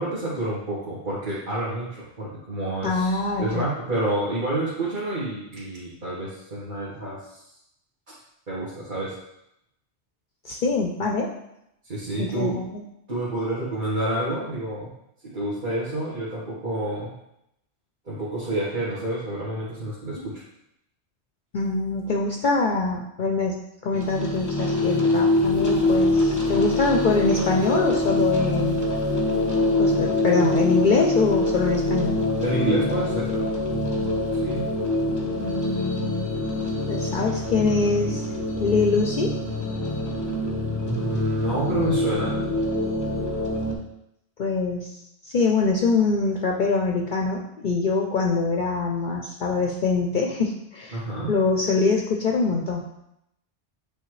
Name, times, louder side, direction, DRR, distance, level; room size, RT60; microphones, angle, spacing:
voice 1, 0.0-7.4 8.1-8.2 8.5-9.2 11.8-12.6 13.1-14.9 15.3-17.1 18.0-20.4 32.4-33.9 34.3-34.6 40.8-42.4 50.9-51.3, right 1 dB, 45° right, -9 dB, 1.6 m, -29 dB
voice 2, 2.8-3.7 10.4-11.3 12.2-12.8 20.2-20.3 21.5-28.8 29.8-32.2 35.4-36.3 36.9-38.2 38.6-39.4 44.4-44.9 45.2-51.0 51.3-52.8, left 4 dB, 55° left, 1 dB, 0.6 m, -24 dB
sound 1, 23.9-43.7, left 2 dB, 20° left, 0.8 m, -24 dB
8.4 x 3.6 x 3.1 m, 0.81 s
omnidirectional pair, 1.1 m